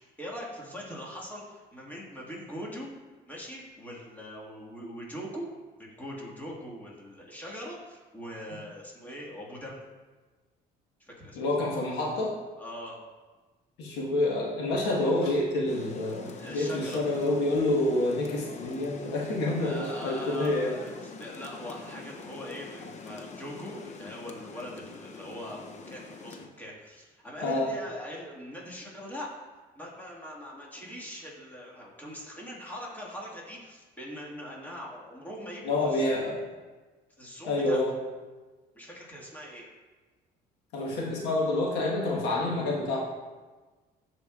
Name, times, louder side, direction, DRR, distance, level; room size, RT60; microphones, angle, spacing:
voice 1, 0.0-2.9 3.3-5.5 5.8-9.8 11.0-11.4 12.6-13.0 16.4-17.1 19.5-29.3 29.8-36.2 37.2-37.8 38.7-39.7, equal, 10° left, -4 dB, 1.7 m, -41 dB
voice 2, 11.3-12.3 13.8-20.7 27.4-27.7 35.6-36.4 37.5-37.9 40.7-43.0, left 2 dB, 90° left, -3 dB, 1.4 m, -28 dB
Rain, 15.7-26.5, left 4 dB, 40° left, 0.6 m, -44 dB
13.5 x 4.5 x 2.4 m, 1.3 s
cardioid pair, 110°, 17 cm